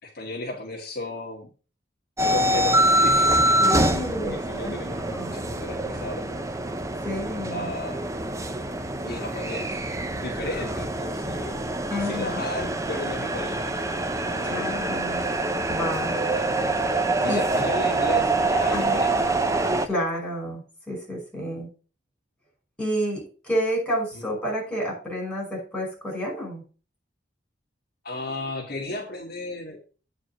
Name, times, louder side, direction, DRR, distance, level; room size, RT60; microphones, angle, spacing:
voice 1, 0.0-1.5 2.3-3.6 3.9-4.0 4.3-6.5 7.5-8.0 9.0-9.8 10.1-11.7 12.0-13.9 14.2-14.7 16.2-16.6 17.2-19.1 28.0-29.8, left 2 dB, 60° left, 0 dB, 1.9 m, -34 dB
sound 1, 2.2-19.9, right 1 dB, 20° right, 0.7 m, -25 dB
voice 2, 3.6-5.4 7.0-7.7 11.9-12.4 14.5-15.2 15.7-16.2 16.6-17.0 17.3-17.4 18.7-19.0 19.8-21.7 22.8-26.6, equal, 5° left, -2 dB, 5.6 m, -30 dB
8.9 x 5.2 x 5.9 m, 0.37 s
head